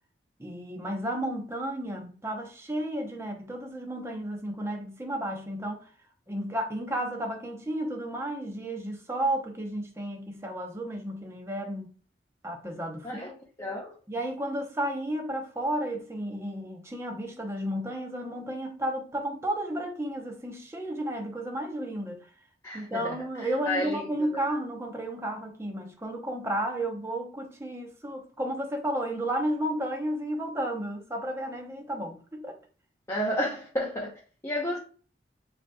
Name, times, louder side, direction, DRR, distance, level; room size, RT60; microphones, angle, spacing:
voice 1, 0.4-5.9 6.3-11.9 12.4-13.4 14.1-22.3 22.7-32.6, right 1 dB, 15° right, 0.8 m, -32 dB
voice 2, 13.6-13.9 22.6-24.1 24.3-24.5 33.1-34.8, left 1 dB, 15° left, 0.7 m, -32 dB
5.0 x 3.0 x 2.3 m
head